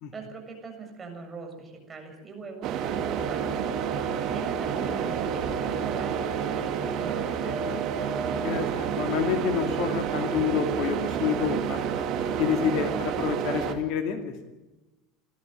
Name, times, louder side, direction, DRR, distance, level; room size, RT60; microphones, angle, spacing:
voice 1, 0.1-3.7 4.2-7.7, right 4 dB, 20° right, 3 dB, 7.3 m, -42 dB
sound 1, 2.6-13.7, right 7 dB, 45° right, 2.6 m, -29 dB
voice 2, 8.4-11.9 12.4-14.3, left 8 dB, 50° left, 7 dB, 2.4 m, -28 dB
29.0 x 13.5 x 9.1 m, 1.1 s
figure-of-eight pair, 75°, 0 cm